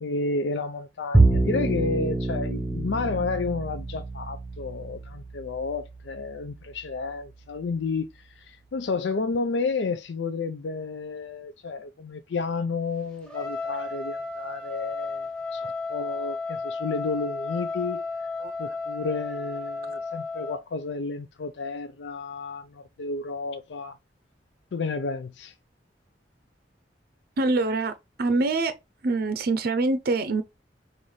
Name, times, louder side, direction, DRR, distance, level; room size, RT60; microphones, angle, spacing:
voice 1, 0.0-18.0 18.6-24.0 24.7-25.5, left 4 dB, 75° left, 0.4 m, -31 dB
Bowed string instrument, 1.1-7.6, right 2 dB, 10° right, 0.6 m, -27 dB
Trumpet, 13.3-20.6, left 3 dB, 5° left, 1.1 m, -33 dB
voice 2, 27.4-27.9 28.2-28.7 29.0-30.4, right 3 dB, 60° right, 0.5 m, -24 dB
5.5 x 2.5 x 3.1 m
head